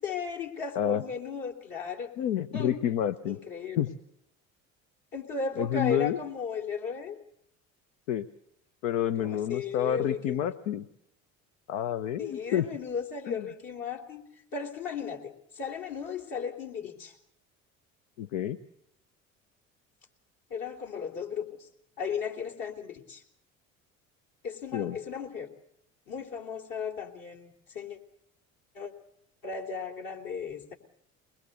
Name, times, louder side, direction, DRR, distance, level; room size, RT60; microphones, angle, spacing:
voice 1, 0.0-2.1 2.5-2.8 3.2-3.9 5.1-7.2 9.2-10.5 12.2-14.2 14.5-17.1 20.5-21.7 22.0-23.2 24.4-25.5 26.1-28.0 28.8-28.9 29.4-30.7, left 6 dB, 50° left, 1 dB, 3.6 m, -35 dB
voice 2, 2.2-3.4 3.8-3.9 5.6-6.2 8.1-8.3 8.8-10.8 11.7-12.7 13.3-13.5 18.2-18.6 24.7-25.0, left 10 dB, 70° left, 12 dB, 0.9 m, -29 dB
22.0 x 21.5 x 6.8 m, 0.74 s
hypercardioid pair, 60°, 41 cm